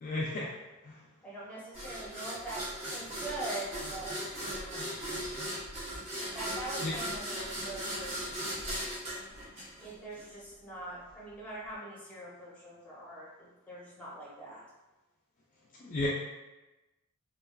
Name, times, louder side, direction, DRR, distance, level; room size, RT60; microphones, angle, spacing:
voice 1, 0.0-0.5 0.8-0.9 6.8-6.9 15.8-16.1, left 2 dB, 40° left, -5 dB, 0.3 m, -33 dB
voice 2, 1.2-2.6 2.9-4.9 6.3-8.2 9.8-13.3 13.7-14.6, right 2 dB, 5° left, -7 dB, 0.8 m, -43 dB
sound 1, 1.7-10.2, equal, 30° right, 0.9 m, -38 dB
3.2 x 2.3 x 2.3 m, 1.1 s
head